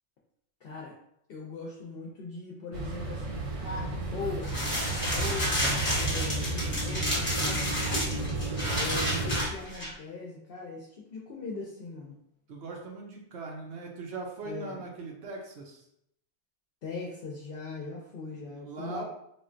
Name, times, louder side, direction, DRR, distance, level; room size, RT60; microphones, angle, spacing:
voice 1, 0.6-0.9 1.3-5.5 5.9-7.7 8.7-12.2 14.4-14.8 16.8-19.0, left 3 dB, 65° left, -3 dB, 0.7 m, -40 dB
sound 1, 2.7-9.5, right 2 dB, 55° right, 0.4 m, -32 dB
sound 2, 4.4-9.9, equal, 10° left, 0.8 m, -31 dB
voice 2, 12.5-15.8 18.5-19.0, right 4 dB, 70° right, 1 dB, 0.8 m, -40 dB
3.6 x 2.2 x 2.5 m, 0.75 s
omnidirectional pair, 1.2 m